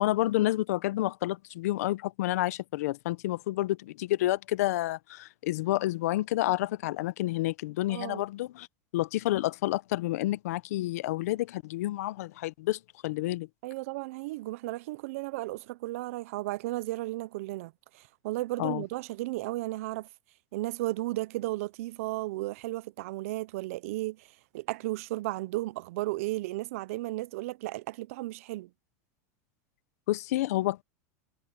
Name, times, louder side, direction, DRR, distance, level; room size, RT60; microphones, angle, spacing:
voice 1, 0.0-8.7 8.9-13.5 18.6-18.8 30.1-30.8, left 16 dB, 70° left, 0.8 m, -29 dB
voice 2, 7.9-8.2 13.6-20.1 20.5-24.3 24.5-28.7, right 19 dB, 60° right, 0.6 m, -34 dB
supercardioid pair, 170°, 9 cm